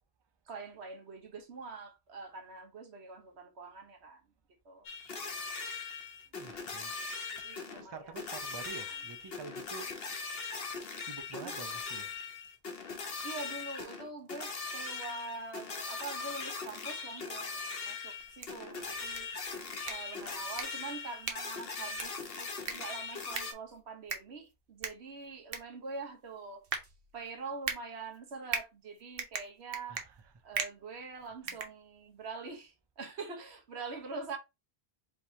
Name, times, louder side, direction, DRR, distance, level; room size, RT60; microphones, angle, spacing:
voice 1, 0.5-4.2 4.6-4.9 7.3-8.1 11.4-11.5 13.2-19.3 19.9-26.6 27.1-30.0 30.4-34.4, right 4 dB, 90° right, 1.3 m, -44 dB
sound 1, 4.8-7.8 8.2-23.5, left 4 dB, 65° left, 1.1 m, -40 dB
voice 2, 6.3-7.0 7.7-10.0 11.0-12.2 29.9-30.5 31.4-31.6, right 5 dB, 30° right, 0.5 m, -48 dB
sound 2, 18.2-32.3, right 5 dB, 60° right, 1.0 m, -42 dB
4.4 x 3.9 x 2.7 m
omnidirectional pair, 1.1 m